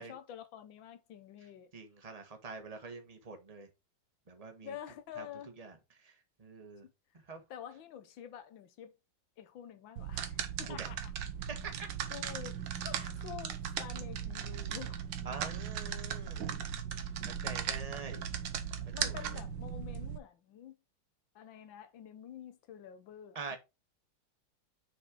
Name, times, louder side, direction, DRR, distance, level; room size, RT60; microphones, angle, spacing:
voice 1, 0.0-1.7 4.6-5.5 6.8-6.9 7.5-8.9 9.4-11.1 12.1-15.0 18.9-20.8 21.3-23.6, left 9 dB, 90° left, 1.7 m, -48 dB
voice 2, 1.7-3.7 4.3-4.7 5.2-5.3 5.6-5.7 6.0-6.1 6.4-6.8 7.3-7.4 10.7-10.9 11.5-11.9 15.2-16.5 17.0-17.1 17.4-18.2 19.0-19.3 23.3-23.6, right 4 dB, 20° right, 1.2 m, -45 dB
sound 1, 10.0-20.2, right 8 dB, 75° right, 1.6 m, -38 dB
6.4 x 4.4 x 4.8 m
omnidirectional pair, 2.0 m